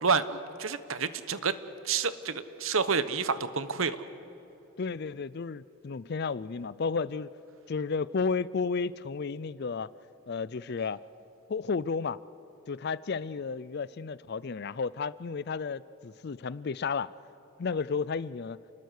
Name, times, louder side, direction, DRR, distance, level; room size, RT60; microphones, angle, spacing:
voice 1, 0.0-1.5 1.8-4.0, right 5 dB, 65° right, 13 dB, 1.0 m, -29 dB
voice 2, 4.8-7.3 7.7-9.9 10.3-11.0 11.5-12.2 12.7-17.1 17.6-18.6, left 5 dB, 45° left, 19 dB, 0.4 m, -32 dB
29.5 x 20.5 x 6.6 m, 3.0 s
head